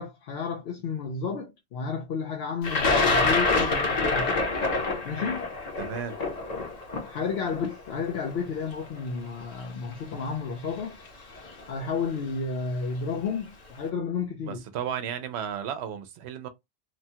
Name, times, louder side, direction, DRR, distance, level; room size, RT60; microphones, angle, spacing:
voice 1, 0.0-4.4 5.0-5.5 7.0-11.0 11.7-14.6, left 5 dB, 70° left, 0.8 m, -32 dB
Thunder, 2.6-8.7 9.6-9.7 10.8-11.1 11.4-11.9, left 3 dB, 40° left, 0.9 m, -26 dB
voice 2, 5.8-6.2 14.4-16.5, right 8 dB, 75° right, 0.8 m, -33 dB
3.0 x 2.2 x 2.7 m
omnidirectional pair, 1.1 m